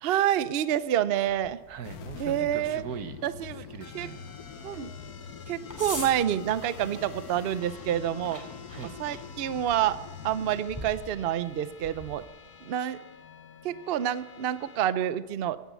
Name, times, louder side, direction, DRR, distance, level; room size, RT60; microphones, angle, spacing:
voice 1, 0.0-1.6 2.2-2.8 3.2-3.6 3.9-4.1 4.6-4.9 5.5-8.4 9.0-10.0 10.2-12.2 12.6-13.0 13.6-15.6, right 11 dB, 55° right, 15 dB, 0.7 m, -28 dB
sound 1, 1.3-12.2, left 1 dB, 10° left, 2.6 m, -46 dB
voice 2, 1.7-4.2 8.7-9.0, right 8 dB, 85° right, 11 dB, 1.5 m, -41 dB
sound 2, 1.8-10.6, left 7 dB, 85° left, 1.3 m, -44 dB
sound 3, 3.8-14.8, left 5 dB, 45° left, 1.2 m, -50 dB
16.0 x 10.0 x 8.3 m, 1.1 s
omnidirectional pair, 1.6 m